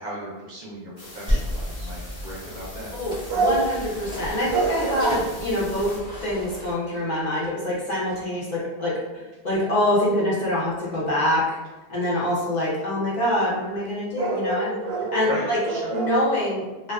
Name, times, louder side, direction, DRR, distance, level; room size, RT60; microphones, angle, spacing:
voice 1, 0.0-2.9 15.0-15.9, right 1 dB, 55° right, -5 dB, 0.6 m, -36 dB
sound 1, 1.0-6.0, left 1 dB, 75° left, 1.0 m, -43 dB
sound 2, 1.3-6.7, equal, 5° right, 0.6 m, -32 dB
sound 3, 1.8-1.9 3.3-3.9 4.5-5.2 6.1-6.2 6.6-6.7 6.9-7.4 8.1-8.4 12.0-12.1 12.4-12.5 13.8-13.9 14.2-16.2, right 3 dB, 85° right, 0.8 m, -26 dB
voice 2, 3.0-5.9 6.2-11.6 11.9-14.7 15.1-15.6 15.9-16.9, left 1 dB, 50° left, -7 dB, 0.8 m, -25 dB
2.4 x 2.2 x 2.3 m, 1.2 s
omnidirectional pair, 1.0 m